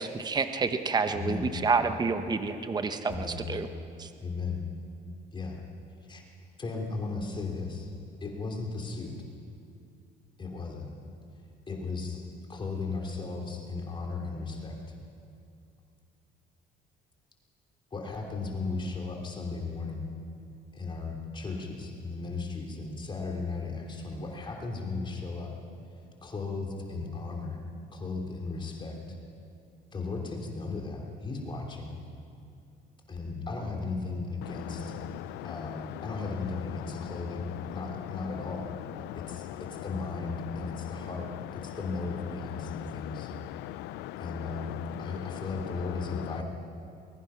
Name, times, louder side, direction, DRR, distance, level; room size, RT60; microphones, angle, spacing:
voice 1, 0.0-3.7 4.0-4.1, right 4 dB, 25° right, 9 dB, 1.0 m, -29 dB
voice 2, 1.1-1.5 3.1-3.5 4.2-4.6 5.3-5.6 6.1-6.2 6.6-7.9 8.2-9.1 10.4-10.9 11.7-12.2 12.5-14.9 17.9-20.1 20.7-25.5 26.2-27.6 27.9-29.2 29.9-32.0 33.1-35.0 35.4-38.7 39.1-43.3 44.2-46.4, left 3 dB, 30° left, 0 dB, 3.2 m, -36 dB
voice 3, 35.1-35.5 39.0-39.6 41.7-41.8 42.7-44.3 44.9-45.4, left 16 dB, 90° left, 18 dB, 0.5 m, -40 dB
23.0 x 21.5 x 5.8 m, 2.5 s
cardioid pair, 110°, 17 cm